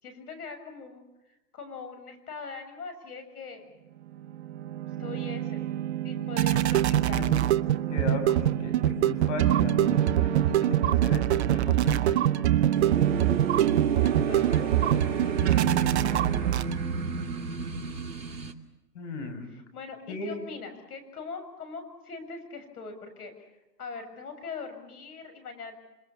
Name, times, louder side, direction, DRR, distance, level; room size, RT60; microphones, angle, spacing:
voice 1, 0.0-3.7 5.0-5.7 6.0-7.5 14.0-16.2 19.5-23.5 23.8-25.8, left 5 dB, 60° left, 8 dB, 7.2 m, -42 dB
sound 1, 4.2-17.1, right 12 dB, 40° right, 0.9 m, -24 dB
voice 2, 7.0-7.4 7.9-12.2 18.9-19.5 20.1-20.4, left 3 dB, 45° left, 8 dB, 7.2 m, -36 dB
sound 2, 12.7-18.5, right 4 dB, 85° right, 2.9 m, -33 dB
27.5 x 26.0 x 7.1 m, 0.99 s
hypercardioid pair, 135°, 50 cm